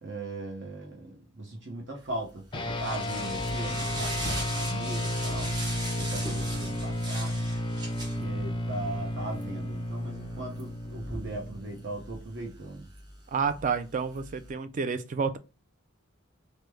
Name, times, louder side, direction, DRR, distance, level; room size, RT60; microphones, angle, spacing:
voice 1, 0.0-5.5 6.0-7.4 8.1-12.8, right 2 dB, 55° right, 0.8 m, -39 dB
sound 1, 2.1-14.5, right 1 dB, 20° right, 0.7 m, -40 dB
sound 2, 2.5-12.2, left 1 dB, 25° left, 0.5 m, -33 dB
voice 2, 13.3-15.4, right 5 dB, 40° right, 0.3 m, -29 dB
3.1 x 2.1 x 3.3 m
head